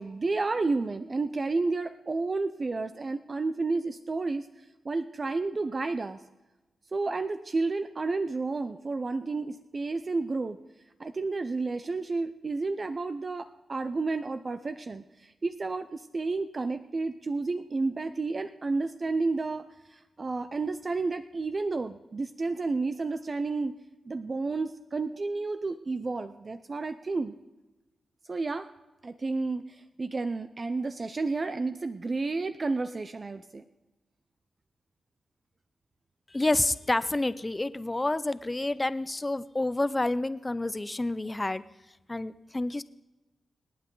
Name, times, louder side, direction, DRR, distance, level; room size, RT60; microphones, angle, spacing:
voice 1, 0.0-4.5 4.8-6.2 6.9-10.6 11.0-23.8 24.1-27.3 28.3-28.7 29.0-33.6, right 3 dB, 40° right, 10 dB, 0.6 m, -31 dB
voice 2, 36.3-41.6 42.1-42.8, left 2 dB, 20° left, 15 dB, 0.6 m, -29 dB
26.5 x 9.0 x 3.9 m, 1.1 s
cardioid pair, 70°, 0 cm